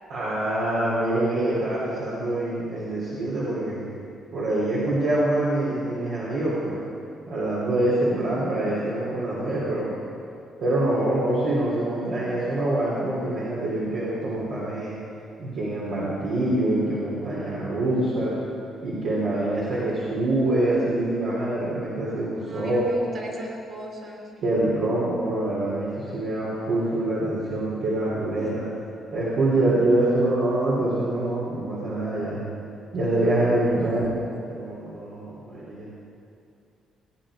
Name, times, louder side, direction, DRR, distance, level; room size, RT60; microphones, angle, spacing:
voice 1, 0.1-3.8 4.3-6.8 7.3-9.9 10.6-14.9 15.4-18.3 18.8-22.8 24.4-28.6 29.1-32.4 32.9-34.1 34.5-35.9, right 1 dB, 75° right, -8 dB, 3.5 m, -25 dB
voice 2, 22.4-24.3 33.6-34.2, right 1 dB, 50° right, -1 dB, 3.9 m, -37 dB
18.0 x 9.4 x 5.1 m, 2.5 s
cardioid pair, 90°, 0 cm